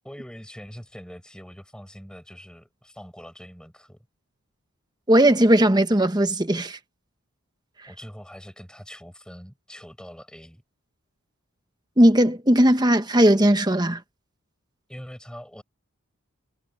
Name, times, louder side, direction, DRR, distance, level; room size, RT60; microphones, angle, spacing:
voice 1, 0.0-4.1 7.9-10.6 14.9-15.6, equal, 5° left, 5.1 m, -43 dB
voice 2, 5.1-6.8 12.0-14.0, right 1 dB, 20° right, 1.2 m, -18 dB
head